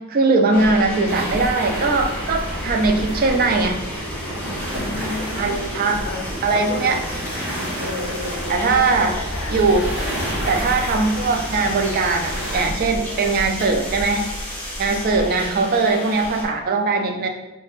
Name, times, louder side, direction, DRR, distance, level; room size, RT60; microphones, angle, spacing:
voice 1, 0.0-3.9 5.4-6.0 6.4-7.0 8.5-9.1 9.5-9.9 10.5-14.3 14.8-17.3, right 3 dB, 40° right, 4 dB, 0.3 m, -20 dB
sound 1, 0.5-16.5, equal, 10° left, 0.6 m, -31 dB
sound 2, 1.0-12.6, equal, 10° right, 1.2 m, -31 dB
voice 2, 4.8-7.0 7.8-9.6 13.0-13.4 14.9-15.2, left 3 dB, 80° left, 3 dB, 0.5 m, -33 dB
5.0 x 2.1 x 2.4 m, 1.1 s
head